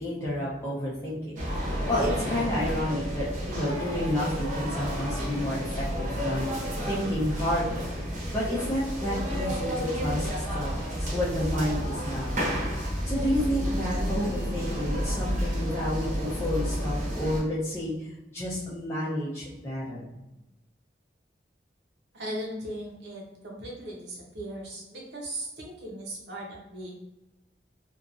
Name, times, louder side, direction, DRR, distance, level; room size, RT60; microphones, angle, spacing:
voice 1, 0.0-1.4 1.9-7.9 8.3-12.4 13.1-20.1, left 1 dB, 15° left, -9 dB, 0.6 m, -30 dB
sound 1, 1.4-17.4, equal, 45° right, 0.9 m, -31 dB
voice 2, 22.1-26.9, right 1 dB, 80° right, -2 dB, 0.8 m, -38 dB
2.8 x 2.4 x 2.5 m, 0.96 s
head